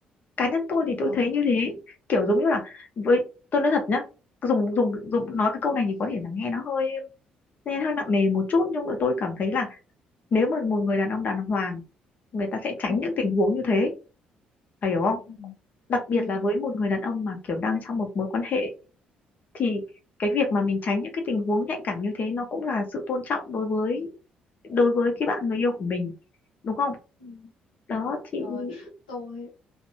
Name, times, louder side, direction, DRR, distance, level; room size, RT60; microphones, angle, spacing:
voice 1, 0.4-1.8 2.1-3.3 3.5-4.1 4.4-7.0 7.7-9.7 10.3-11.8 12.3-13.9 14.8-15.2 15.9-18.7 19.5-19.8 20.2-24.1 24.6-26.1 26.6-27.0 27.9-28.8, left 3 dB, 40° left, 3 dB, 0.7 m, -25 dB
voice 2, 12.9-13.2 15.3-15.5 16.2-16.6 27.2-27.5 28.4-29.5, left 4 dB, 75° left, 0 dB, 0.6 m, -40 dB
2.6 x 2.1 x 2.7 m, 0.32 s
figure-of-eight pair, 45°, 4 cm